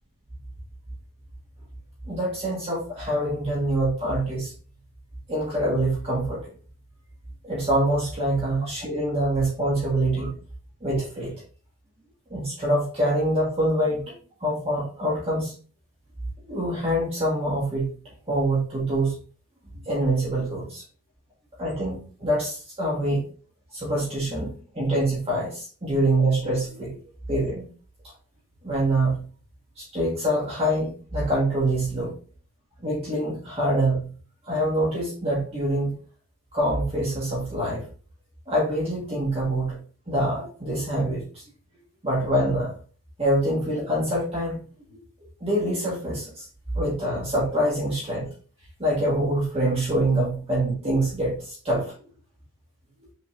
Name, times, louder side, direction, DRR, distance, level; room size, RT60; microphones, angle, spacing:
voice 1, 2.1-4.5 5.3-6.4 7.4-10.3 10.8-11.3 12.3-14.1 14.4-15.5 16.5-17.9 18.3-19.1 19.8-20.8 21.6-23.2 23.7-27.0 27.3-27.6 28.6-29.2 29.8-32.1 32.8-34.1 34.4-35.9 36.5-37.8 38.5-39.8 40.1-41.4 42.0-42.7 43.2-44.6 44.9-45.0 45.4-46.4 46.7-48.3 48.8-51.9, right 1 dB, 25° right, -5 dB, 1.5 m, -25 dB
5.9 x 3.8 x 2.4 m, 0.40 s
head